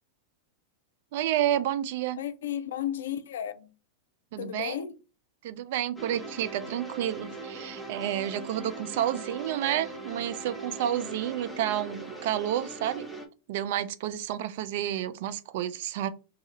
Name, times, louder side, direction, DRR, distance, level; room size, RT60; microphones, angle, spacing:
voice 1, 1.1-2.2 4.3-4.8 5.4-13.1 13.5-16.1, right 11 dB, 60° right, 0.3 m, -30 dB
voice 2, 2.2-3.7 4.4-5.0, left 10 dB, 75° left, 0.4 m, -33 dB
sound 1, 6.0-13.3, right 2 dB, 5° right, 0.8 m, -40 dB
2.6 x 2.4 x 4.0 m
hypercardioid pair, 100°, 0 cm